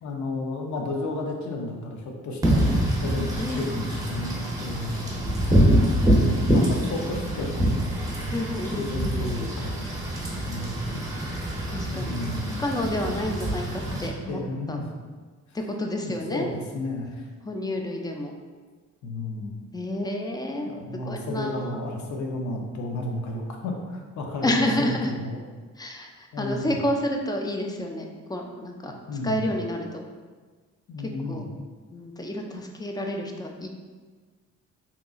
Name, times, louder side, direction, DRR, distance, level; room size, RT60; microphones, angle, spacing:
voice 1, 0.0-5.1 6.1-7.7 8.7-9.8 10.5-11.0 11.9-12.6 14.3-14.9 16.0-17.2 19.0-19.6 20.6-25.4 26.3-26.8 29.1-29.5 30.9-31.5, left 2 dB, 70° left, 1 dB, 0.6 m, -32 dB
Wind / Rain, 2.4-14.1, equal, 10° right, 0.7 m, -25 dB
voice 2, 3.4-3.8 8.3-9.4 11.7-12.2 12.6-14.4 14.7-14.8 15.5-16.5 17.4-18.3 19.7-20.7 21.1-21.8 24.4-25.1 25.8-29.0 29.2-30.1 31.3-31.5 31.9-33.7, left 1 dB, 15° left, 2 dB, 0.3 m, -29 dB
3.6 x 2.9 x 2.4 m, 1.4 s
cardioid pair, 90°, 30 cm